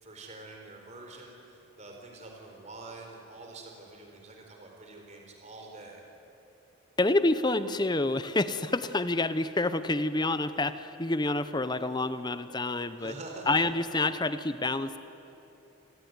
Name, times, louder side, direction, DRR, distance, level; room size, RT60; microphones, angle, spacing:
voice 1, 0.0-6.0 13.0-13.6, right 2 dB, 35° right, 1 dB, 4.3 m, -46 dB
voice 2, 7.0-13.1 13.5-15.0, left 2 dB, 20° left, 12 dB, 0.8 m, -28 dB
28.5 x 21.0 x 9.7 m, 2.9 s
head